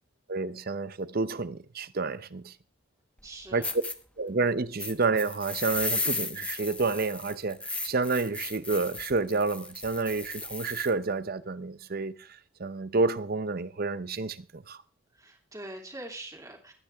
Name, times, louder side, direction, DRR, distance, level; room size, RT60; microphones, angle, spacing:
voice 1, 0.3-2.5 3.5-3.6 4.2-12.3 12.6-14.8, right 3 dB, 45° right, 0.7 m, -29 dB
sound 1, 3.2-3.3 3.6-3.9 4.8-10.9, left 2 dB, 5° left, 0.9 m, -35 dB
voice 2, 3.2-3.7 15.1-16.7, right 1 dB, 15° right, 2.8 m, -43 dB
21.5 x 9.6 x 3.5 m
head